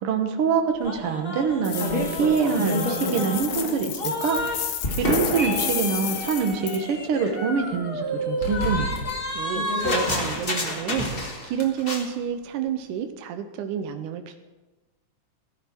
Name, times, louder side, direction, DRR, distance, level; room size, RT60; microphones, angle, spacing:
voice 1, 0.0-4.4 5.0-8.9, right 6 dB, 60° right, 4 dB, 1.7 m, -25 dB
sound 1, 0.8-0.9 1.4-3.5 4.2-5.2 5.9-7.3 7.6-7.7 8.4-10.3 10.9-11.6, left 2 dB, 60° left, 3.3 m, -31 dB
sound 2, 0.8-4.6 4.8-11.5 11.8-12.1, left 1 dB, 25° left, 1.2 m, -30 dB
sound 3, 1.6-6.8, left 10 dB, 80° left, 2.4 m, -32 dB
voice 2, 9.3-14.4, right 9 dB, 90° right, 7 dB, 2.3 m, -30 dB
16.0 x 13.0 x 4.4 m, 1.1 s
omnidirectional pair, 3.4 m